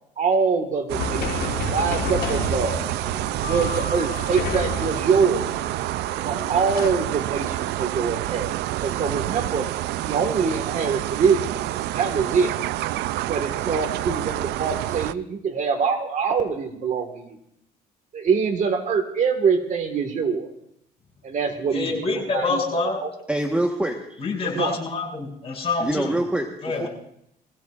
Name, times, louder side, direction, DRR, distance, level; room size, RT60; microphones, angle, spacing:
voice 1, 0.2-2.9 3.5-5.5 6.2-8.5 8.8-9.7 10.0-12.5 13.3-17.4 18.1-20.5 21.2-23.1 24.4-24.8, right 5 dB, 45° right, 6 dB, 1.7 m, -24 dB
sound 1, 0.9-6.9, left 7 dB, 60° left, 1.5 m, -32 dB
sound 2, 0.9-15.1, right 15 dB, 80° right, 0.5 m, -28 dB
Mallet percussion, 3.4-6.2, left 10 dB, 90° left, 3.6 m, -39 dB
voice 2, 21.7-23.0 24.2-26.1 26.6-26.9, left 3 dB, 35° left, -1 dB, 6.6 m, -26 dB
voice 3, 23.3-24.2 25.8-26.5 26.8-26.9, right 1 dB, 5° right, 2 dB, 1.3 m, -24 dB
23.0 x 16.0 x 2.5 m, 0.75 s
cardioid pair, 110°, 17 cm